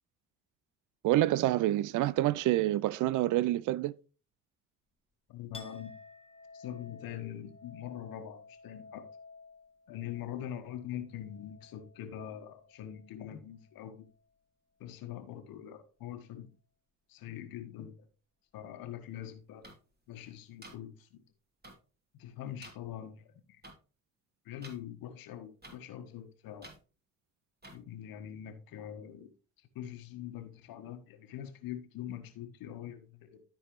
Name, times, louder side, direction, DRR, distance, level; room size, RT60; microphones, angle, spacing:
voice 1, 1.0-3.9, right 15 dB, 55° right, 0.5 m, -27 dB
voice 2, 5.3-5.9 6.5-9.0 9.9-14.1 14.8-16.5 17.1-18.1 18.5-19.7 20.1-21.3 22.1-23.6 24.4-26.7 27.7-29.3 29.6-33.4, left 10 dB, 65° left, 1.4 m, -43 dB
Chink clink, 5.5-13.2 13.6-14.2, left 4 dB, 15° left, 1.6 m, -53 dB
sound 1, 19.6-19.7 20.6-20.7 21.6-21.7 22.6-22.7 23.6-23.7 24.6-24.8 25.6-25.8 26.6-26.8 27.6-27.8, right 2 dB, 25° right, 2.7 m, -49 dB
13.0 x 4.6 x 3.1 m
hypercardioid pair, 50°, 37 cm